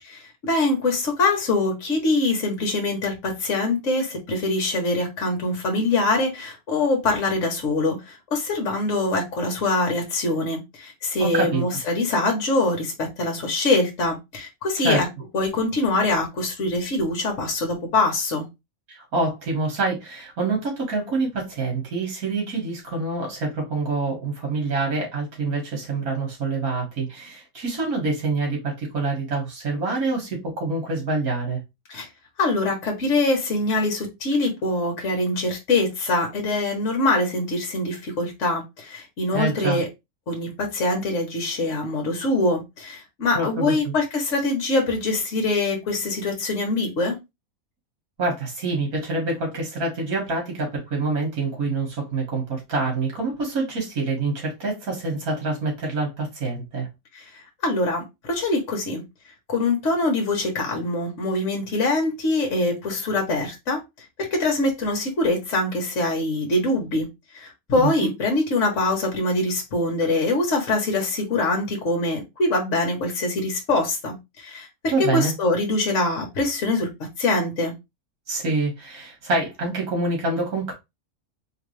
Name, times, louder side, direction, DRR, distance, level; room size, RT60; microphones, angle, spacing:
voice 1, 0.0-15.1 15.3-18.5 31.9-32.1 32.4-39.9 40.3-47.2 57.1-59.0 59.5-63.8 64.2-67.1 67.3-76.9 77.2-77.7, left 2 dB, 55° left, 1.5 m, -24 dB
voice 2, 11.2-11.6 14.8-15.0 18.9-31.6 39.3-39.8 43.3-43.9 48.2-56.9 67.7-68.1 74.9-75.3 78.3-80.7, right 3 dB, 70° right, 2.3 m, -26 dB
3.9 x 3.2 x 3.2 m
omnidirectional pair, 1.6 m